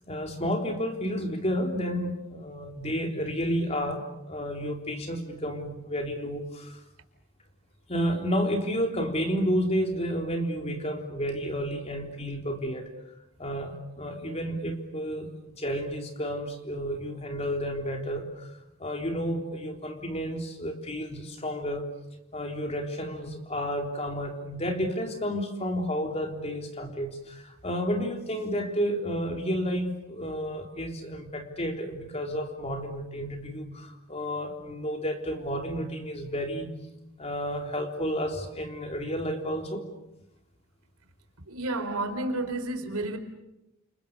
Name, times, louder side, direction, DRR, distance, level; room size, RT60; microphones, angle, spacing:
voice 1, 0.1-6.8 7.9-12.9 13.4-21.9 22.3-36.7 37.2-39.8, equal, 30° left, 3 dB, 3.7 m, -31 dB
voice 2, 41.5-43.2, right 2 dB, 85° right, 7 dB, 4.5 m, -31 dB
29.5 x 28.5 x 6.8 m, 0.89 s
head